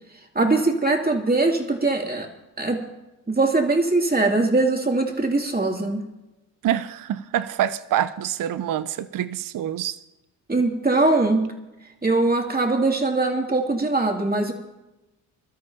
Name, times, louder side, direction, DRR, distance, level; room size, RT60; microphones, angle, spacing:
voice 1, 0.3-2.3 2.6-2.8 3.3-6.0 10.5-11.5 12.0-14.5, right 2 dB, 20° right, 1 dB, 2.9 m, -21 dB
voice 2, 6.6-10.0, right 11 dB, 45° right, 14 dB, 0.7 m, -26 dB
26.0 x 13.0 x 2.9 m, 1.0 s
hypercardioid pair, 50°, 48 cm